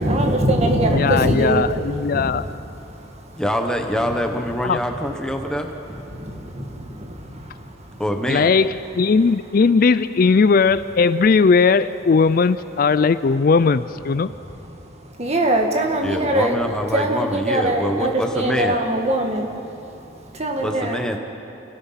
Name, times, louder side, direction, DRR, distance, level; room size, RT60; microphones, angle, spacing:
voice 1, 0.0-2.4 2.7-3.4 5.9-8.0 14.2-21.0, right 1 dB, 35° right, 2 dB, 2.0 m, -23 dB
voice 2, 0.9-2.4 4.6-4.8 8.3-14.3, left 4 dB, 45° left, 14 dB, 0.4 m, -18 dB
voice 3, 3.4-5.7 8.0-8.5 16.0-18.8 20.6-21.2, equal, 5° left, 4 dB, 1.1 m, -24 dB
28.5 x 16.5 x 5.8 m, 2.9 s
head